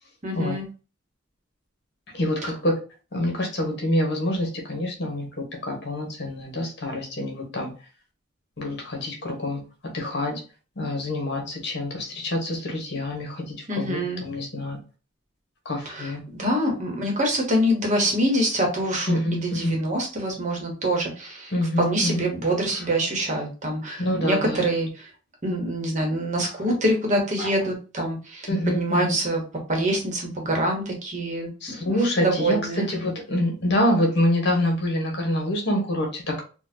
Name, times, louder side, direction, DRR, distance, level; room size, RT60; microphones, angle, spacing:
voice 1, 0.2-0.7 2.4-2.6 13.7-14.2 15.8-25.1 25.4-29.4 29.7-32.9, right 1 dB, 40° right, 1 dB, 1.1 m, -25 dB
voice 2, 2.1-2.8 3.1-5.3 5.6-7.7 8.6-9.6 9.9-10.4 10.8-14.8 15.6-16.2 19.1-19.7 21.5-22.2 24.0-24.6 27.4-27.5 28.5-29.1 31.6-32.6 32.9-36.4, left 1 dB, 60° left, 1 dB, 1.2 m, -26 dB
4.2 x 2.3 x 2.7 m, 0.34 s
head